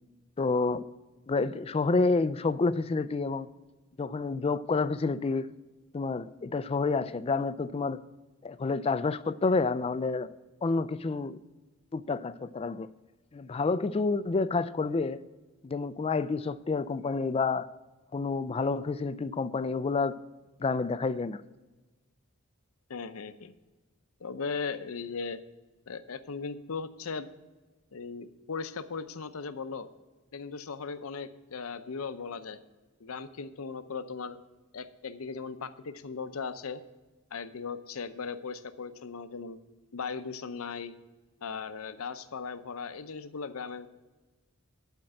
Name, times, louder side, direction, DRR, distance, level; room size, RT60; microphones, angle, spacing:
voice 1, 0.4-0.9 1.3-3.5 4.0-5.5 5.9-8.0 8.4-10.3 10.6-11.4 11.9-12.9 13.3-15.2 15.6-17.7 18.1-20.2 20.6-21.4, left 4 dB, 25° left, 0.3 m, -29 dB
voice 2, 22.9-23.5 24.2-25.4 25.9-27.3 27.9-29.9 30.3-32.6 33.0-34.4 34.7-36.8 37.3-39.6 39.9-40.9 41.4-43.9, left 5 dB, 75° left, 0.6 m, -38 dB
11.5 x 4.5 x 7.6 m
head